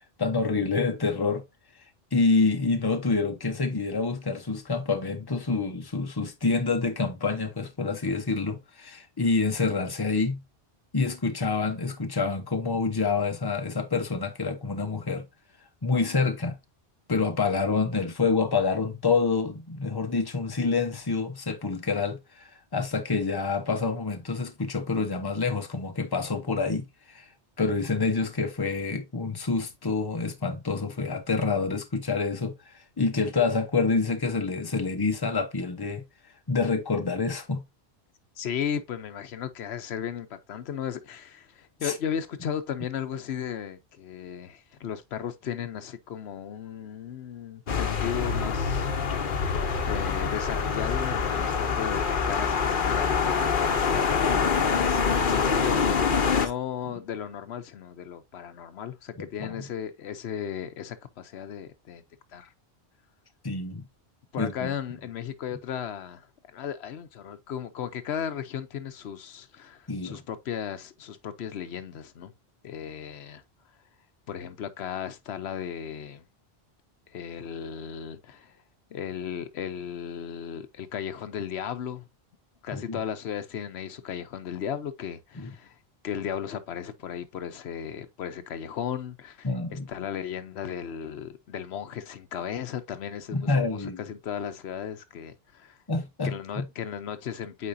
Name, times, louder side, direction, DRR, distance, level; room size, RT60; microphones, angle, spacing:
voice 1, 0.2-1.4 2.1-10.4 10.9-15.3 15.8-16.6 17.1-22.4 22.7-27.3 27.6-36.0 36.5-37.6 41.8-41.9 59.2-59.6 63.4-63.8 64.4-64.7 69.9-70.2 82.7-83.0 85.4-85.5 89.4-89.9 93.3-94.0 95.9-96.7, left 4 dB, 25° left, 0.9 m, -27 dB
voice 2, 38.4-48.8 49.8-53.6 53.9-62.0 62.3-62.5 64.3-72.3 72.6-73.4 74.3-76.2 77.1-78.6 78.9-82.1 82.6-85.8 86.0-95.8 96.2-97.7, left 8 dB, 90° left, 1.0 m, -35 dB
sound 1, 47.7-56.5, left 5 dB, 55° left, 1.0 m, -25 dB
8.6 x 4.2 x 2.6 m
omnidirectional pair, 1.1 m